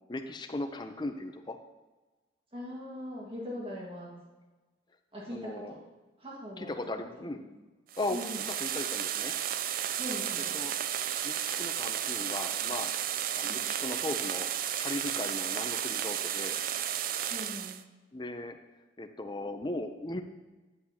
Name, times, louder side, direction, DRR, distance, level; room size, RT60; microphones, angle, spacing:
voice 1, 0.1-1.6 5.3-5.7 6.6-7.4 8.0-8.2 8.5-9.4 10.4-10.7 11.2-12.9 13.3-14.5 14.8-16.6 18.1-18.6 19.0-20.2, left 2 dB, 25° left, 6 dB, 0.6 m, -37 dB
voice 2, 2.5-4.2 5.1-5.8 6.2-6.7 7.4-7.5 8.1-8.4 10.0-10.6 13.5-13.6 17.3-17.8, equal, 30° right, -4 dB, 1.8 m, -40 dB
sound 1, 7.9-17.8, right 10 dB, 50° right, 0.3 m, -33 dB
9.5 x 8.5 x 2.9 m, 1.2 s
head